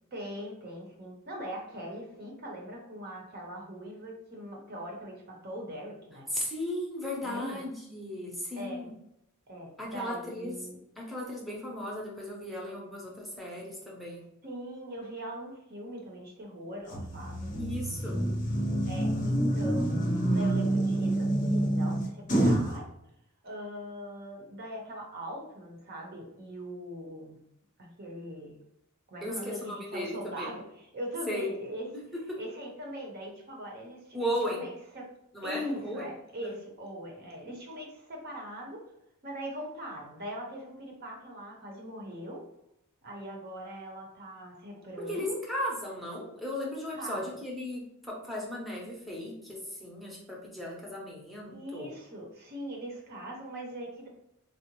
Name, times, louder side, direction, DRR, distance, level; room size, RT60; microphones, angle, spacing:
voice 1, 0.1-6.3 7.2-7.6 8.5-8.8 9.5-10.8 14.4-18.3 18.8-22.9 23.4-27.4 27.8-28.6 29.1-31.9 32.4-35.1 35.4-38.8 39.2-42.4 43.0-45.4 46.9-47.2 51.5-54.1, equal, 45° right, 0 dB, 0.7 m, -41 dB
voice 2, 6.3-8.9 9.8-10.6 11.0-14.2 17.5-18.2 29.2-30.5 31.3-31.5 32.1-32.4 34.1-34.6 35.3-36.1 36.4-36.6 45.0-51.9, equal, ahead, -4 dB, 0.7 m, -36 dB
sound 1, 16.9-22.7, right 1 dB, 35° left, 0.7 m, -27 dB
3.7 x 2.0 x 2.9 m, 0.80 s
head